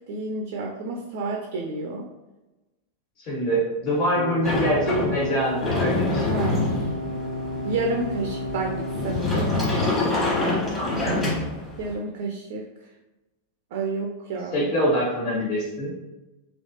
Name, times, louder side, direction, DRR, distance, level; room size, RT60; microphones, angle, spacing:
voice 1, 0.1-2.0 6.3-6.9 7.6-9.7 11.8-12.7 13.7-14.7, right 3 dB, 50° right, 0 dB, 0.4 m, -30 dB
voice 2, 3.2-6.3 10.7-11.2 14.5-15.9, equal, 45° left, -7 dB, 1.5 m, -25 dB
sound 1, 4.2-9.2, left 1 dB, 75° left, 0.4 m, -32 dB
Sliding door, 4.4-11.9, left 2 dB, 20° left, 1.2 m, -26 dB
3.2 x 2.9 x 2.8 m, 1.0 s
figure-of-eight pair, 90°, 0 cm